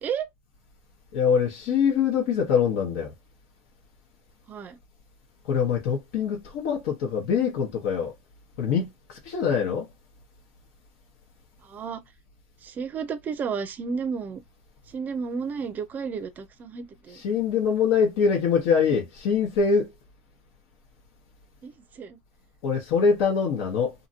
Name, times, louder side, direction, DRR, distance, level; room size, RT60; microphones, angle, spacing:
voice 1, 1.1-3.1 5.5-8.1 8.6-9.9 17.2-19.9 22.6-23.9, left 6 dB, 70° left, 1.0 m, -24 dB
voice 2, 11.6-12.0 12.6-14.4 14.9-17.2 21.6-22.2, right 6 dB, 30° right, 0.5 m, -32 dB
2.8 x 2.6 x 2.7 m
supercardioid pair, 135°, 6 cm